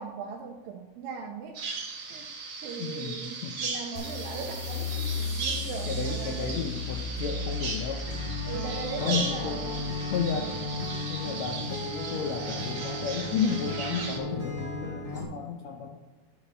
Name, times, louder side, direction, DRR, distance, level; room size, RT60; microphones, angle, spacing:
voice 1, 0.0-1.6 2.1-2.3 2.6-6.6 8.4-9.9, right 5 dB, 85° right, 1 dB, 2.4 m, -39 dB
Bird vocalization bird call bird song, 1.5-14.2, right 4 dB, 45° right, 1.8 m, -37 dB
voice 2, 2.8-3.6 5.9-8.1 9.0-9.6 10.1-10.6 11.1-16.0, left 6 dB, 80° left, 3 dB, 1.5 m, -33 dB
sound 1, 4.0-11.1, left 3 dB, 55° left, 2.5 m, -36 dB
Acoustic guitar, 8.1-15.2, left 2 dB, 20° left, 2.2 m, -35 dB
11.5 x 5.1 x 4.3 m, 1.2 s
omnidirectional pair, 4.0 m